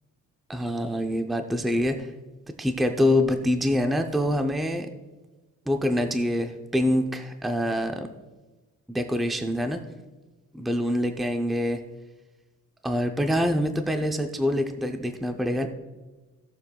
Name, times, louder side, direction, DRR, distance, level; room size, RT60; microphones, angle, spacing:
voice 1, 0.5-2.1 2.5-4.9 5.7-8.1 8.9-9.8 10.5-11.8 12.8-15.7, left 1 dB, ahead, 6 dB, 0.5 m, -25 dB
17.0 x 7.1 x 2.3 m, 1.2 s
cardioid pair, 140°, 32 cm